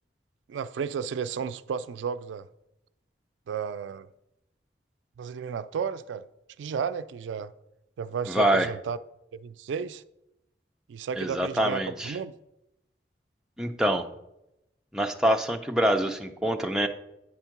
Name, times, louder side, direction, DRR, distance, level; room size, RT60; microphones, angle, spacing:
voice 1, 0.5-2.5 3.5-4.1 5.2-6.2 6.6-7.5 8.0-9.0 9.3-10.0 10.9-12.4, right 6 dB, 90° right, 0.3 m, -33 dB
voice 2, 8.3-8.7 11.2-12.2 13.6-14.0 14.9-16.9, right 1 dB, 5° right, 0.4 m, -25 dB
8.8 x 3.6 x 5.8 m
head